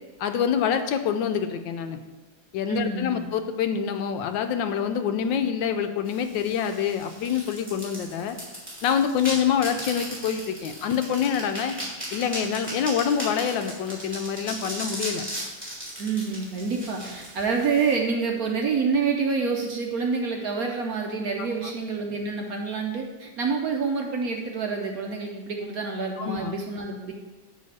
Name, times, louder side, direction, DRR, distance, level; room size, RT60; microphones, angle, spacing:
voice 1, 0.2-2.0 2.5-8.4 8.8-11.7 12.1-15.2 26.2-26.5, left 8 dB, 75° left, 8 dB, 1.2 m, -26 dB
voice 2, 2.7-3.3 16.0-27.1, right 5 dB, 60° right, 1 dB, 1.0 m, -27 dB
sound 1, 6.1-17.9, right 1 dB, 5° right, 2.8 m, -37 dB
9.5 x 3.4 x 6.5 m, 1.2 s
omnidirectional pair, 2.1 m